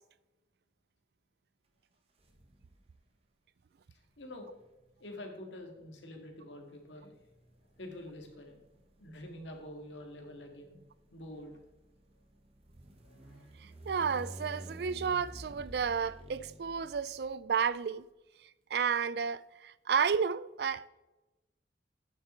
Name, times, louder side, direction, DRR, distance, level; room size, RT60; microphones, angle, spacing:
sound 1, 2.2-2.9 4.0-17.7, right 1 dB, 35° right, 1.3 m, -52 dB
voice 1, 4.2-4.5 5.0-7.1 7.8-8.6 9.0-10.8 11.1-11.6 13.0-13.8, left 1 dB, 85° left, 2.1 m, -47 dB
voice 2, 13.6-18.1 18.4-20.9, right 6 dB, 60° right, 0.4 m, -32 dB
8.9 x 7.5 x 4.4 m
head